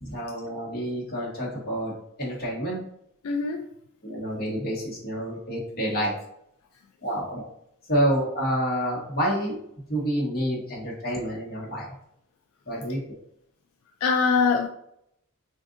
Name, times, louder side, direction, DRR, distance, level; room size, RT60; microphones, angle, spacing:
voice 1, 0.0-2.8 4.0-6.2 7.0-7.4 7.9-9.6 9.9-11.9 12.7-13.2, equal, 45° left, -4 dB, 1.2 m, -28 dB
voice 2, 3.2-3.7 14.0-14.7, left 5 dB, 80° left, 4 dB, 0.3 m, -22 dB
3.6 x 2.5 x 2.5 m, 0.73 s
head